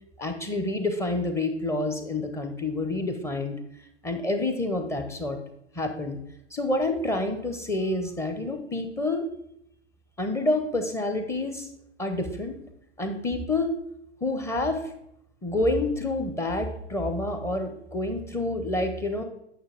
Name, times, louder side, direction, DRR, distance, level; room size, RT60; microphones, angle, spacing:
voice 1, 0.2-3.6 4.0-5.4 5.7-6.2 6.5-9.3 10.2-11.7 12.0-12.6 13.0-13.7 14.2-14.8 15.4-19.2, left 2 dB, 5° left, 6 dB, 0.7 m, -28 dB
8.9 x 6.5 x 3.4 m, 0.76 s
figure-of-eight pair, 115°, 36 cm